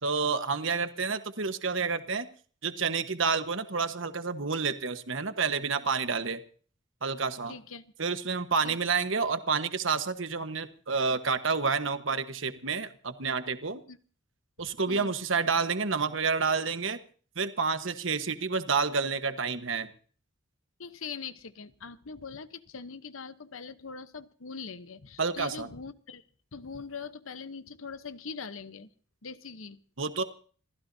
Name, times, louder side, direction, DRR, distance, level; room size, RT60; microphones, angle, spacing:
voice 1, 0.0-2.3 2.6-6.4 7.0-7.5 8.0-13.8 14.6-17.0 17.4-19.9 25.2-25.7 30.0-30.2, right 5 dB, 70° right, 10 dB, 1.3 m, -29 dB
voice 2, 7.5-7.9 8.6-8.8 13.9-14.0 14.9-15.1 20.8-26.2 26.5-28.9 29.2-29.8, left 5 dB, 85° left, 13 dB, 1.0 m, -42 dB
27.0 x 15.0 x 2.8 m, 0.43 s
head